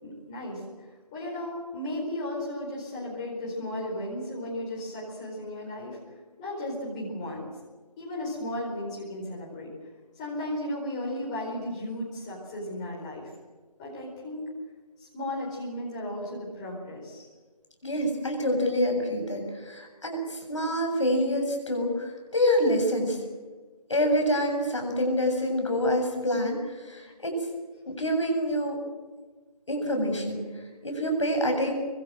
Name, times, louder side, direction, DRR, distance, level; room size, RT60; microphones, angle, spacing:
voice 1, 0.0-0.6 1.1-6.0 6.4-7.5 8.0-9.7 10.1-13.3 13.8-14.4 15.0-17.3, left 1 dB, 10° left, -5 dB, 4.5 m, -35 dB
voice 2, 17.8-23.2 23.9-27.5 27.9-28.8 29.7-31.7, equal, 45° left, 3 dB, 7.7 m, -27 dB
25.5 x 23.5 x 7.9 m, 1.4 s
figure-of-eight pair, 165°, 21 cm